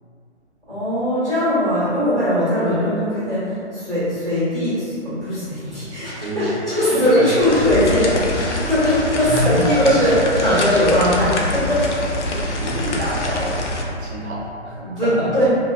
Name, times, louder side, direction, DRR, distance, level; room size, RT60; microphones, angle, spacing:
voice 1, 0.7-12.0 14.8-15.4, equal, ahead, -27 dB, 0.6 m, -20 dB
Scratching (performance technique), 6.0-10.8, equal, 55° left, 1.0 m, -35 dB
voice 2, 6.2-6.5 6.9-7.5 9.3-9.8 12.0-12.1 12.3-13.6 14.0-15.4, equal, 70° right, -4 dB, 0.6 m, -26 dB
sound 1, 7.4-13.8, left 1 dB, 80° left, 0.5 m, -25 dB
2.7 x 2.1 x 2.2 m, 2.5 s
figure-of-eight pair, 140°, 35 cm